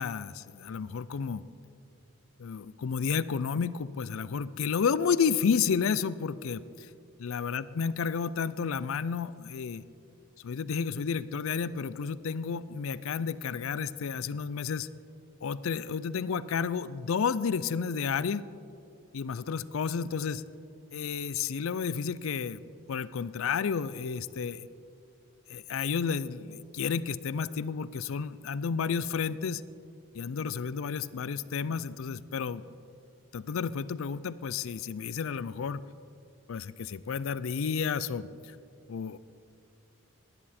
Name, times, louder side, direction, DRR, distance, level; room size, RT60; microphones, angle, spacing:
voice 1, 0.0-1.4 2.4-6.9 7.2-9.8 10.4-14.9 15.4-18.5 19.1-20.4 20.9-22.6 22.9-24.7 25.5-29.6 30.1-32.6 33.3-35.8 36.5-38.6 38.9-39.2, left 6 dB, 75° left, 17 dB, 0.4 m, -31 dB
18.0 x 9.9 x 4.3 m, 2.5 s
head